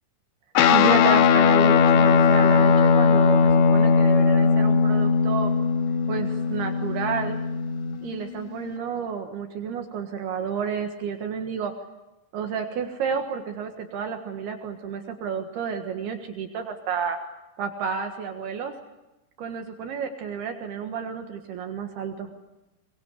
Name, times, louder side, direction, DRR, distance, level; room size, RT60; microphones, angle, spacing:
Guitar, 0.6-8.2, left 5 dB, 85° left, 3.7 m, -19 dB
voice 1, 0.7-5.5 6.1-7.4 8.0-11.7 12.3-17.2 17.6-18.7 19.4-22.3, right 6 dB, 65° right, 5 dB, 3.3 m, -30 dB
23.5 x 23.0 x 8.4 m, 1.0 s
omnidirectional pair, 5.2 m